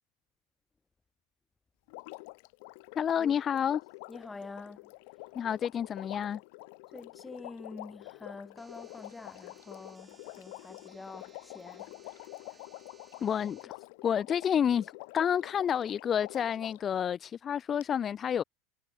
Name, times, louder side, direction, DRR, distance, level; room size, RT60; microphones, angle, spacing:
Water, 1.9-16.9 17.8-17.9, left 29 dB, 70° left, 1.6 m, -47 dB
voice 1, 3.0-3.8 5.3-6.4 13.2-13.8 14.0-18.4, left 8 dB, 30° left, 0.5 m, -29 dB
voice 2, 4.1-4.9 6.9-12.6, left 3 dB, 15° left, 1.7 m, -47 dB
sound 1, 8.6-13.7, right 4 dB, 20° right, 2.0 m, -62 dB
supercardioid pair, 115°, 0 cm